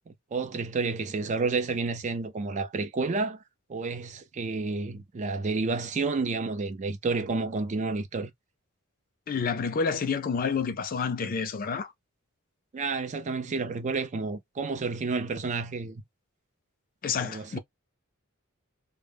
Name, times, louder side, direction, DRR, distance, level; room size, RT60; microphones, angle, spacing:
voice 1, 0.1-3.4 3.7-8.3 12.7-16.0 17.2-17.6, right 4 dB, 35° right, 0.4 m, -30 dB
voice 2, 9.3-11.9 17.0-17.6, left 5 dB, 40° left, 0.4 m, -29 dB
2.1 x 2.1 x 3.2 m
head